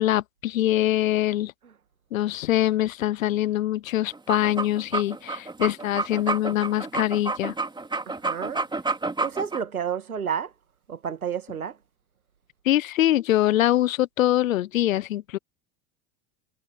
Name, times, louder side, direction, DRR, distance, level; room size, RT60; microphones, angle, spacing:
voice 1, 0.0-1.5 2.1-7.5 12.6-15.4, left 13 dB, 65° left, 1.3 m, -23 dB
sound 1, 4.1-9.6, right 3 dB, 10° right, 2.7 m, -29 dB
voice 2, 8.1-8.6 9.2-10.5 10.9-11.8, right 7 dB, 80° right, 2.0 m, -30 dB
figure-of-eight pair, 75°, 42 cm